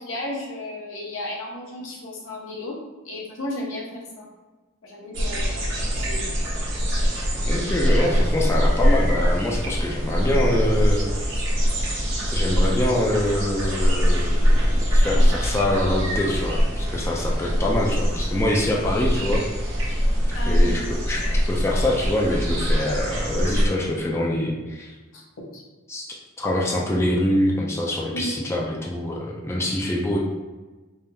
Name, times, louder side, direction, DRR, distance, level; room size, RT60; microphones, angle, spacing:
voice 1, 0.0-2.8 3.0-4.3 4.8-5.7 6.0-6.3 15.1-15.3 20.3-20.7 25.1-25.2 25.5-25.6 28.1-28.4, left 1 dB, 80° left, -3 dB, 0.8 m, -33 dB
sound 1, 5.1-23.7, equal, 70° right, 1.1 m, -22 dB
voice 2, 7.4-11.1 12.3-14.6 14.9-19.4 20.5-24.9 25.9-26.1 26.4-30.2, left 1 dB, 15° left, -3 dB, 0.3 m, -25 dB
3.4 x 2.7 x 2.2 m, 1.2 s
head